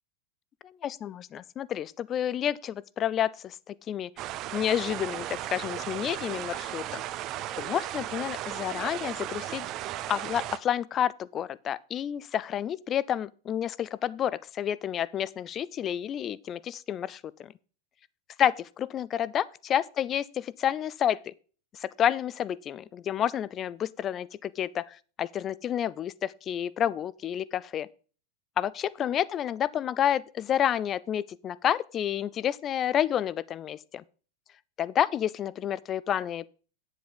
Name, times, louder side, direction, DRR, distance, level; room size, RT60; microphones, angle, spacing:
voice 1, 0.8-4.1 4.5-7.0 7.6-9.7 10.1-17.5 18.4-21.3 21.7-27.9 28.6-34.0 34.8-36.5, left 10 dB, 30° left, 0.4 m, -30 dB
sound 1, 4.2-10.6, right 13 dB, 35° right, 0.6 m, -36 dB
9.2 x 8.1 x 3.9 m
figure-of-eight pair, 90°, 0 cm